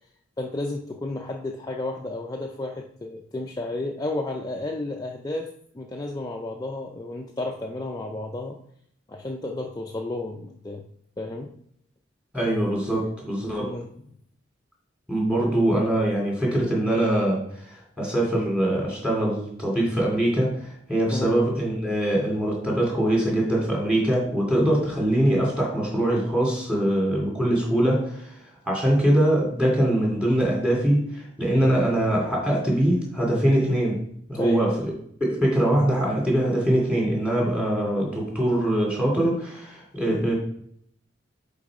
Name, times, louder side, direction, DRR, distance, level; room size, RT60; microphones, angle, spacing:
voice 1, 0.4-8.6 9.1-10.9 11.2-11.5 13.6-13.9 21.1-21.4 34.3-34.7, left 2 dB, 20° left, 1 dB, 0.4 m, -32 dB
voice 2, 12.3-13.7 15.1-28.4 28.6-34.0 34.3-34.7 35.2-40.3, right 1 dB, 5° right, -3 dB, 2.8 m, -23 dB
7.6 x 3.9 x 4.8 m, 0.68 s
head